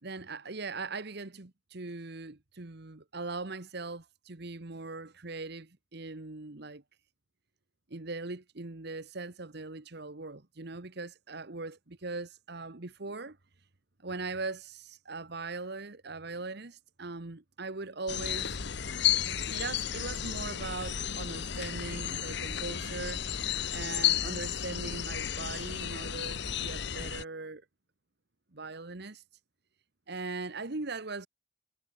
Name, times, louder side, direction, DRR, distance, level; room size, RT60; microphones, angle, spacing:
voice 1, 0.0-6.8 7.9-13.4 14.0-18.5 19.5-23.3 23.7-27.6 28.5-29.2 30.1-31.3, right 3 dB, 55° right, 1.4 m, -40 dB
sound 1, 18.1-27.2, left 9 dB, 60° left, 1.0 m, -33 dB
head